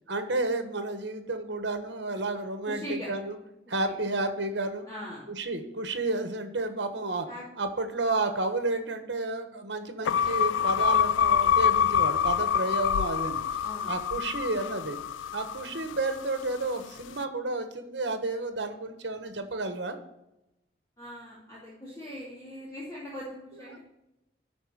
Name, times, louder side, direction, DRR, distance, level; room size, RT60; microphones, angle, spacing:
voice 1, 0.1-3.4 3.7-4.9 5.3-7.3 7.6-13.4 13.9-15.0 15.3-20.0, right 2 dB, 70° right, 7 dB, 1.2 m, -31 dB
voice 2, 2.7-3.1 4.9-5.3 7.3-7.4 13.6-13.9 21.0-23.8, left 1 dB, 20° left, -9 dB, 2.7 m, -40 dB
sound 1, 10.1-16.4, left 8 dB, 85° left, 0.3 m, -26 dB
11.0 x 4.2 x 6.5 m, 0.90 s
head